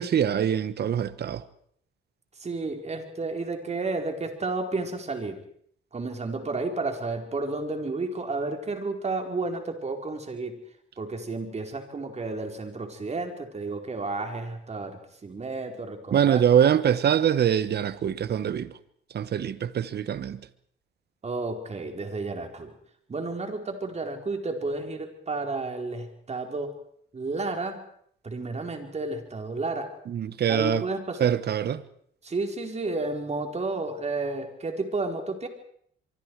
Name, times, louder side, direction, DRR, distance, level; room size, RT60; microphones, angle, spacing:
voice 1, 0.0-1.4 16.1-18.7 19.1-20.4 30.1-30.8 31.2-31.8, right 9 dB, 55° right, 1.3 m, -24 dB
voice 2, 2.4-5.4 5.9-10.6 11.0-16.4 21.2-22.7 23.1-26.7 27.1-27.8 28.2-29.9 30.5-31.3 32.2-35.5, right 3 dB, 35° right, 4.5 m, -31 dB
24.5 x 24.5 x 4.8 m
cardioid pair, 90°, 20 cm